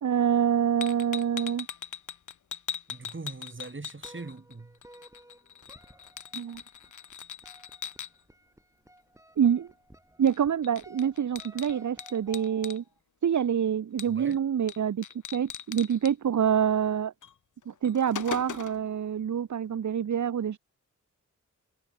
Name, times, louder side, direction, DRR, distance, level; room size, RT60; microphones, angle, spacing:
voice 1, 0.0-1.7 6.3-6.6 9.4-9.7 10.2-12.8 13.2-15.0 15.3-17.1 17.7-20.6, right 8 dB, 65° right, 0.9 m, -26 dB
sound 1, 0.8-4.5 4.8-8.1 10.3-10.4 10.6-12.8 14.0-14.4 14.7-14.8 15.0-16.1 17.2-17.3 17.7-18.9, left 8 dB, 70° left, 1.0 m, -40 dB
voice 2, 2.9-4.8 14.1-14.4, right 3 dB, 40° right, 5.9 m, -41 dB
sound 2, 4.0-13.0, right 1 dB, 10° right, 7.9 m, -55 dB
cardioid pair, 65°, 31 cm